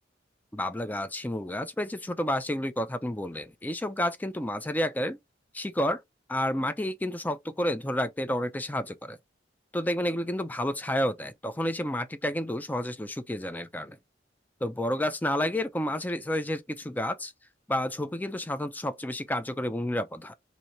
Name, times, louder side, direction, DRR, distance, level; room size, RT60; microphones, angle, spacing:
voice 1, 0.5-5.2 5.5-6.0 6.3-9.2 9.7-14.0 14.6-17.3 17.7-20.3, left 1 dB, 10° left, 0.4 m, -30 dB
4.3 x 2.7 x 2.7 m
head